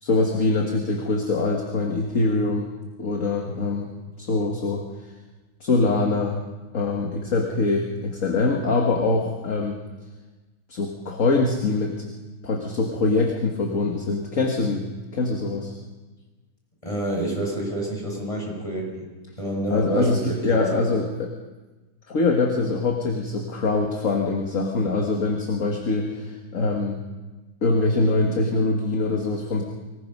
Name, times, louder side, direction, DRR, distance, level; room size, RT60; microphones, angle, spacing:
voice 1, 0.0-2.7 3.0-3.9 4.2-4.8 5.6-6.4 6.7-9.8 10.7-11.9 12.4-14.8 15.1-15.7 19.7-21.3 22.1-27.0 27.6-29.6, left 3 dB, 40° left, 1 dB, 1.9 m, -23 dB
voice 2, 16.8-19.1 19.4-20.8, right 1 dB, 15° left, -1 dB, 6.3 m, -28 dB
25.0 x 19.0 x 5.5 m, 1.2 s
omnidirectional pair, 2.4 m